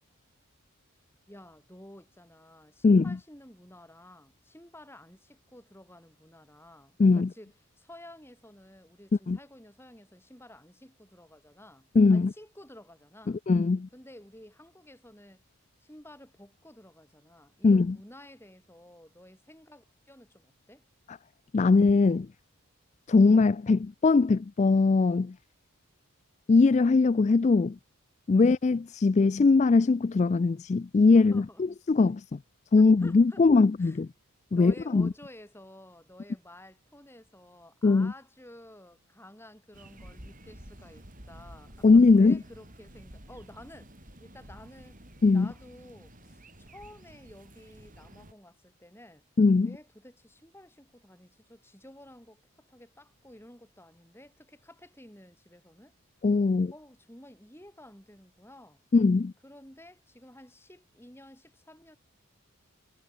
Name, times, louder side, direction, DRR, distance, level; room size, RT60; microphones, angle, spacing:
voice 1, 1.3-13.4 13.9-15.4 15.8-20.8 28.3-28.6 31.1-31.6 32.8-33.4 33.8-34.0 34.5-41.9 42.1-43.9 44.2-45.0 45.3-49.3 49.6-55.9 56.7-58.8 59.4-62.0, left 1 dB, 10° left, 6.7 m, -52 dB
voice 2, 2.8-3.2 7.0-7.3 9.3-9.4 12.0-12.3 13.3-13.9 17.6-18.0 21.5-22.3 23.1-25.4 26.5-27.8 28.3-32.4 32.7-34.1 34.5-35.1 37.8-38.1 41.8-42.4 45.2-45.5 49.4-49.7 56.2-56.7 58.9-59.3, left 4 dB, 30° left, 0.3 m, -21 dB
sound 1, 39.7-48.3, right 1 dB, 35° right, 7.6 m, -51 dB
head